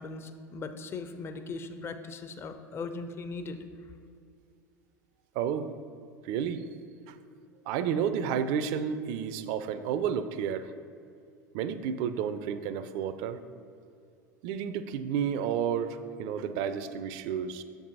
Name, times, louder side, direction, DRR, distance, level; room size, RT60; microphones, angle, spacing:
voice 1, 0.0-3.6, left 3 dB, 25° left, 9 dB, 0.5 m, -39 dB
voice 2, 5.4-5.7 6.2-6.6 7.1-7.2 7.7-10.7 11.5-13.4 14.4-17.6, right 8 dB, 50° right, 12 dB, 0.4 m, -31 dB
7.2 x 4.6 x 4.0 m, 2.4 s
figure-of-eight pair, 75°, 10 cm